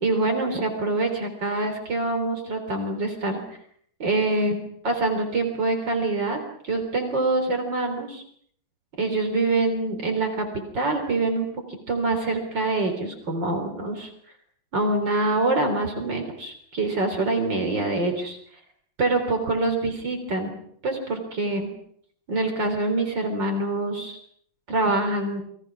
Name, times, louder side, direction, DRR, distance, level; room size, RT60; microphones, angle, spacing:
voice 1, 0.0-3.4 4.0-4.6 4.8-8.2 9.0-10.5 10.7-11.5 11.9-14.1 14.7-18.4 19.0-20.5 20.8-21.7 22.3-24.2 24.7-25.4, right 2 dB, 65° right, 5 dB, 4.3 m, -25 dB
28.5 x 22.5 x 6.1 m, 0.64 s
omnidirectional pair, 2.1 m